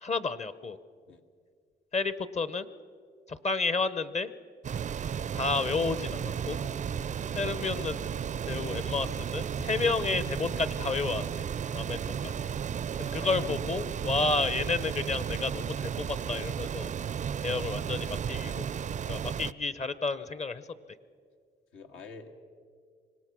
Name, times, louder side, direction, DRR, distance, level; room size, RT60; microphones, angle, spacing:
voice 1, 0.0-0.8 1.9-2.7 3.3-4.3 5.3-6.6 7.3-8.0 8.5-11.5 11.7-12.5 13.0-16.9 17.4-18.7 19.1-20.7, left 3 dB, 35° left, 14 dB, 0.8 m, -31 dB
sound 1, 4.6-19.5, right 8 dB, 40° right, 0.4 m, -34 dB
voice 2, 12.0-12.5 13.0-13.6 14.0-14.2 21.7-22.3, left 3 dB, 85° left, 4 dB, 2.0 m, -47 dB
25.0 x 19.0 x 6.2 m, 2.1 s
cardioid pair, 90°, 20 cm